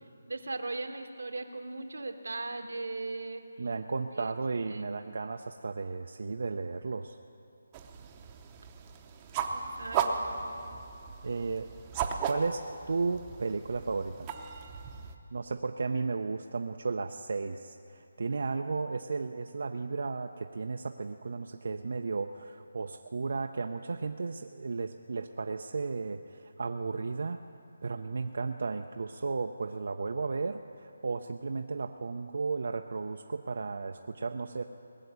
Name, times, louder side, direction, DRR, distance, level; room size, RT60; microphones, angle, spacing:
voice 1, 0.3-3.4 4.1-4.4 4.7-5.0 9.5-10.4, right 3 dB, 85° right, 6 dB, 1.3 m, -38 dB
voice 2, 3.6-7.2 11.2-11.7 12.3-14.3 15.3-27.4 27.8-34.6, right 4 dB, 65° right, 5 dB, 0.5 m, -34 dB
sound 1, 7.7-15.1, right 6 dB, 20° right, 0.8 m, -36 dB
20.0 x 6.7 x 9.5 m, 2.6 s
figure-of-eight pair, 165°, 0 cm